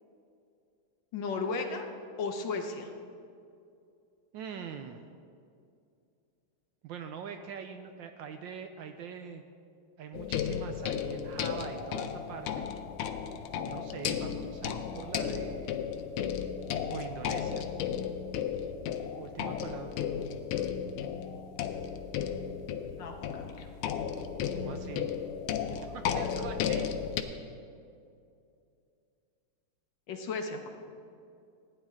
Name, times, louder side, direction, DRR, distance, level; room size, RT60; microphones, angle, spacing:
voice 1, 1.1-1.8 2.2-2.9 23.0-23.7 30.1-30.7, left 4 dB, 65° left, 4 dB, 1.5 m, -35 dB
voice 2, 4.3-5.0 6.8-9.4 10.0-12.7 13.6-15.7 16.9-17.6 19.2-20.0 24.5-25.1 25.7-26.9, right 7 dB, 75° right, 7 dB, 1.1 m, -43 dB
sound 1, 10.1-27.2, left 8 dB, 80° left, 1.5 m, -34 dB
15.5 x 9.6 x 3.6 m, 2.5 s
omnidirectional pair, 2.4 m